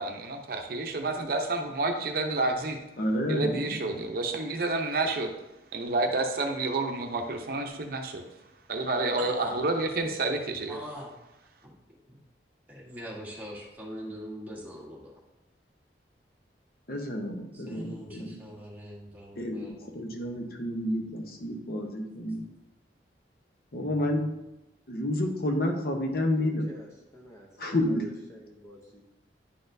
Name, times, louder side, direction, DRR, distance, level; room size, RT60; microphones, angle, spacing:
voice 1, 0.0-2.8 3.3-5.3 5.7-8.2 8.7-10.8, right 2 dB, 55° right, 3 dB, 0.7 m, -29 dB
voice 2, 3.0-4.0 16.9-18.4 19.4-22.4 23.7-24.2 24.9-26.7 27.6-28.1, left 1 dB, 55° left, 3 dB, 0.8 m, -30 dB
voice 3, 9.2-9.6 10.7-11.1 11.6-11.7 12.1-12.2 12.7-15.1 17.7-19.9 23.8-24.2, equal, 10° right, -5 dB, 1.4 m, -43 dB
voice 4, 26.3-29.0, equal, 15° left, -1 dB, 0.6 m, -49 dB
10.0 x 4.1 x 2.6 m, 0.94 s
head